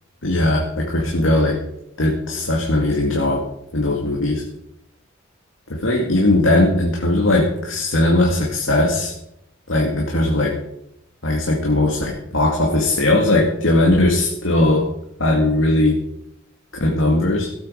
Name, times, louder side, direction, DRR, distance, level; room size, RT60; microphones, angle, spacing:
voice 1, 0.2-1.6 2.0-3.4 3.7-4.4 5.7-9.1 9.7-10.6 11.2-14.9 15.2-16.0 16.8-17.5, left 1 dB, 80° left, 0 dB, 2.1 m, -18 dB
17.0 x 8.6 x 5.2 m, 0.80 s
head